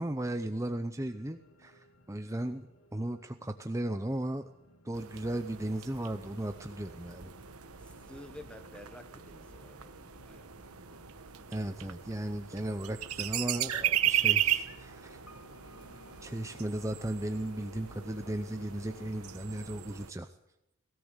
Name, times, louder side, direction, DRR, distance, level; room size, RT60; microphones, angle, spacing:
voice 1, 0.0-4.5 4.8-7.3 11.5-15.2 16.2-20.4, right 1 dB, 15° right, 0.7 m, -36 dB
sound 1, 1.0-20.0, left 2 dB, 85° left, 2.6 m, -59 dB
sound 2, 4.9-20.1, right 11 dB, 85° right, 1.3 m, -36 dB
voice 2, 7.8-10.5, left 1 dB, 5° left, 1.2 m, -51 dB
19.0 x 17.0 x 8.1 m
head